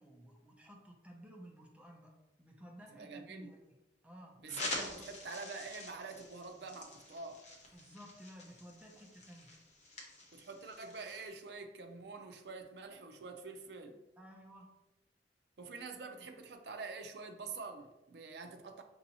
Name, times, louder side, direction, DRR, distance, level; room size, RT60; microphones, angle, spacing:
voice 1, 0.0-3.8 4.0-4.4 4.8-5.1 7.7-9.6 14.2-14.8, equal, 5° right, 0.4 m, -55 dB
voice 2, 3.0-3.5 4.4-7.4 10.3-14.0 15.6-18.8, right 4 dB, 65° right, 0.5 m, -46 dB
sound 1, 4.5-11.3, left 2 dB, 40° left, 0.8 m, -46 dB
5.3 x 2.7 x 2.7 m
head